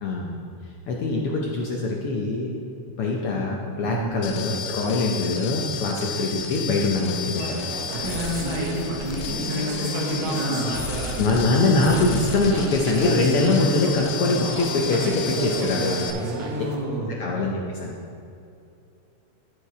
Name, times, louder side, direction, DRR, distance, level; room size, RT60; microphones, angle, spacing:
voice 1, 0.0-0.4 0.9-2.5 3.0-7.5 11.2-16.1 17.1-17.9, left 3 dB, 70° left, -2 dB, 1.4 m, -23 dB
sound 1, 4.2-16.1, left 6 dB, 90° left, 2.1 m, -33 dB
Walking in and around busy exhibition in Tate Britain, 7.4-16.8, right 2 dB, 60° right, 1.5 m, -33 dB
voice 2, 7.9-10.8 16.1-17.3, equal, 80° right, -1 dB, 2.7 m, -29 dB
13.0 x 4.8 x 4.7 m, 2.6 s
omnidirectional pair, 3.3 m